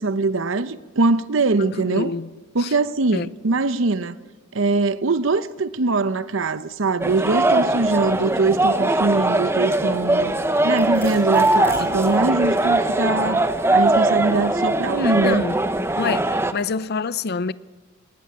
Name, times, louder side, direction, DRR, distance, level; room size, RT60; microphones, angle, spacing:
voice 1, 0.0-2.1 2.5-4.2 4.5-10.3 10.6-15.4, right 3 dB, 70° right, 0.8 m, -22 dB
voice 2, 1.6-2.3 2.6-2.7 3.1-3.3 11.8-12.0 14.9-15.6 15.9-17.5, left 4 dB, 50° left, 0.6 m, -27 dB
sound 1, 7.0-16.5, right 2 dB, 10° right, 1.0 m, -21 dB
Domestic sounds home sounds, 10.3-12.2, equal, 10° left, 6.8 m, -40 dB
19.0 x 18.0 x 9.5 m
head